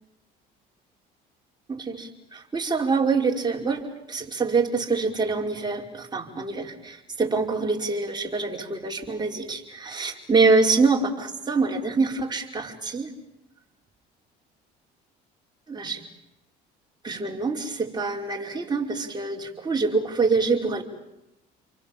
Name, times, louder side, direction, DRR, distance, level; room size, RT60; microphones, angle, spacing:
voice 1, 1.7-3.8 4.1-13.1 15.7-16.0 17.0-20.8, right 4 dB, 20° right, -1 dB, 5.2 m, -25 dB
29.5 x 24.0 x 7.6 m, 0.93 s
supercardioid pair, 85°, 20 cm